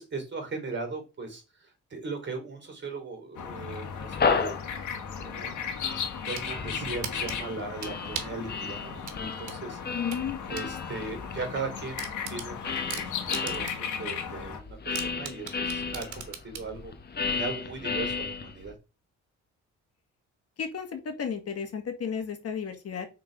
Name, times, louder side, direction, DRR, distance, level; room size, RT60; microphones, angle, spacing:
voice 1, 0.0-4.6 5.2-5.6 6.3-9.8 10.5-16.9 17.3-18.7, right 3 dB, 40° right, 4 dB, 3.0 m, -38 dB
sound 1, 3.3-14.6, left 7 dB, 75° left, 1.6 m, -36 dB
sound 2, 3.9-13.7 14.3-18.7, left 5 dB, 35° left, 0.9 m, -34 dB
sound 3, 6.0-6.5 7.0-8.4 9.0-10.7 11.1-11.2 11.5-11.6 12.0-13.9 14.3-14.4 14.9-16.7, right 8 dB, 75° right, 1.4 m, -38 dB
voice 2, 9.9-10.4 20.6-23.1, left 7 dB, 55° left, 6 dB, 1.6 m, -33 dB
6.1 x 3.9 x 5.0 m, 0.30 s
cardioid pair, 90°, 30 cm